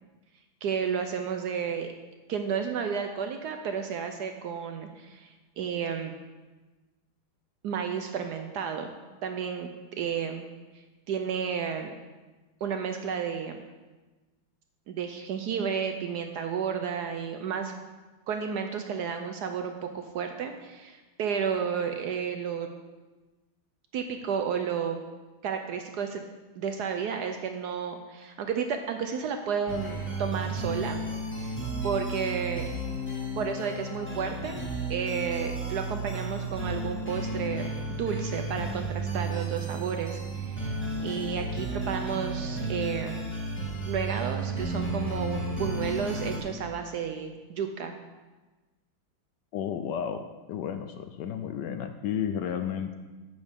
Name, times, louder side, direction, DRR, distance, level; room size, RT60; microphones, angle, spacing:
voice 1, 0.6-1.9 2.3-6.1 7.6-8.9 9.2-9.7 10.0-10.5 10.7-11.9 12.6-13.6 14.9-17.7 18.3-22.7 23.9-25.0 25.4-26.2 26.6-31.0 31.4-31.6 31.8-32.6 33.4-34.6 34.9-40.7 41.0-43.2 43.9-47.9, right 7 dB, 70° right, 6 dB, 1.0 m, -32 dB
sound 1, 29.7-46.4, right 2 dB, 5° left, 1.4 m, -33 dB
voice 2, 49.5-50.2 50.5-52.9, left 8 dB, 75° left, 8 dB, 1.0 m, -32 dB
10.5 x 8.0 x 3.5 m, 1.2 s
omnidirectional pair, 2.1 m